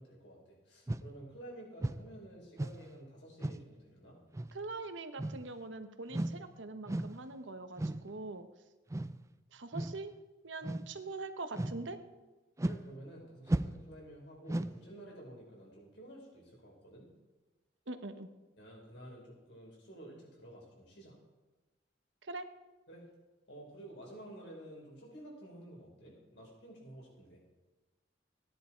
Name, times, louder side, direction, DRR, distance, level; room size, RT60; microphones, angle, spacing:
voice 1, 0.0-4.2 12.6-17.1 18.6-21.2 22.9-23.1 23.5-27.4, right 1 dB, 65° left, -2 dB, 5.0 m, -51 dB
sound 1, 0.9-1.1 1.8-2.1 2.6-2.8 3.4-3.7 4.3-4.5 5.2-5.5 6.1-6.4 6.9-7.2 7.8-8.1 8.9-9.2 9.7-10.0 10.6-10.9 11.5-11.9 12.6-12.9 13.5-13.9 14.5-14.8, right 1 dB, 15° right, 0.4 m, -35 dB
voice 2, 4.5-8.5 9.5-10.1 10.4-12.0 17.9-18.3 22.2-22.5, right 3 dB, 90° right, 8 dB, 1.1 m, -43 dB
16.0 x 10.0 x 4.6 m, 1.1 s
head